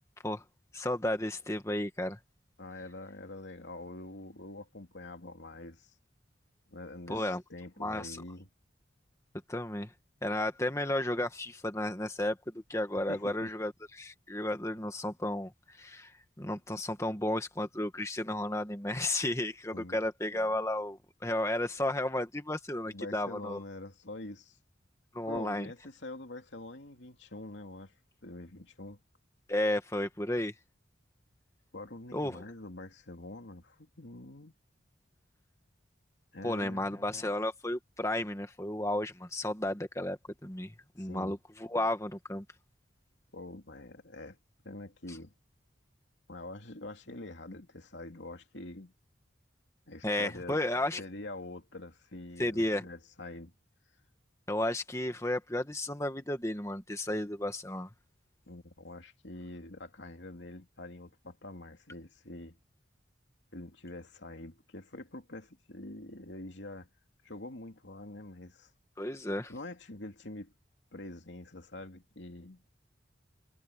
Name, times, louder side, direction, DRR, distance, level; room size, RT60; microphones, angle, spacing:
voice 1, 0.7-2.2 7.1-7.4 7.8-8.2 9.5-9.9 10.2-23.6 25.1-25.7 29.5-30.5 32.1-32.4 36.4-42.4 45.1-45.2 50.0-51.0 52.4-52.9 54.5-57.9 69.0-69.5, left 1 dB, 15° left, 1.6 m, -33 dB
voice 2, 2.6-5.9 6.7-8.5 13.1-13.5 19.7-20.0 22.9-24.6 25.3-27.9 28.2-29.0 31.7-34.6 36.3-37.3 41.0-41.3 43.3-44.4 44.6-45.3 46.3-48.9 49.9-50.6 51.0-53.5 58.5-62.6 63.5-66.9 67.2-68.7 69.5-70.5 70.9-72.6, left 2 dB, 70° left, 2.7 m, -45 dB
head